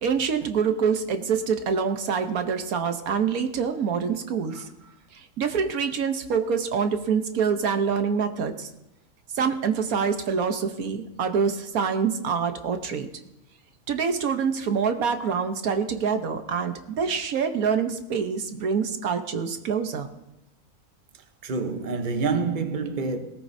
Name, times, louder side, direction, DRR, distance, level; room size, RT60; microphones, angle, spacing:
voice 1, 0.0-4.7 5.1-8.7 9.3-13.1 13.9-20.1, right 6 dB, 80° right, 1.4 m, -26 dB
voice 2, 21.4-23.2, right 4 dB, 40° right, 1.0 m, -27 dB
18.5 x 17.5 x 2.7 m
omnidirectional pair, 1.5 m